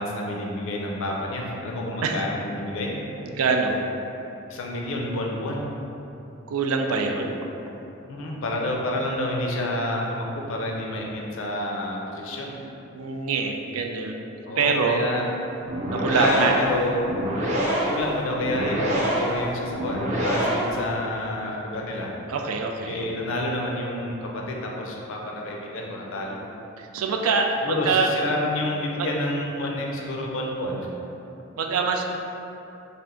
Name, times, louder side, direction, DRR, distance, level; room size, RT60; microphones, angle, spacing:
voice 1, 0.0-3.0 4.5-5.6 8.1-12.5 14.4-15.3 16.1-17.0 17.9-22.1 22.8-26.4 27.6-30.9, left 1 dB, 65° left, -1 dB, 0.5 m, -29 dB
voice 2, 3.2-3.8 6.5-7.4 12.9-14.2 14.6-15.1 15.9-16.7 22.3-23.0 26.8-28.3 29.0-29.1 31.6-32.0, right 4 dB, 80° right, 3 dB, 0.4 m, -24 dB
sound 1, 15.6-20.9, right 1 dB, 35° right, 0.6 m, -26 dB
3.3 x 2.5 x 3.7 m, 2.9 s
head